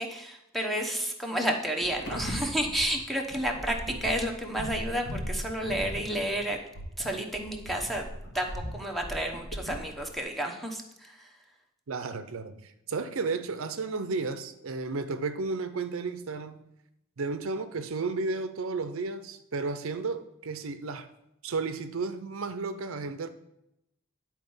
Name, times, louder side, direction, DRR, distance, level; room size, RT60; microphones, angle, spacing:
voice 1, 0.0-6.6 7.0-8.1 8.3-11.4, right 1 dB, ahead, 0.9 m, -31 dB
sound 1, 1.8-10.2, equal, 65° left, 2.0 m, -38 dB
voice 2, 11.9-16.6 17.2-21.1 21.4-23.3, right 4 dB, 75° right, 0.6 m, -33 dB
9.9 x 4.3 x 5.5 m
head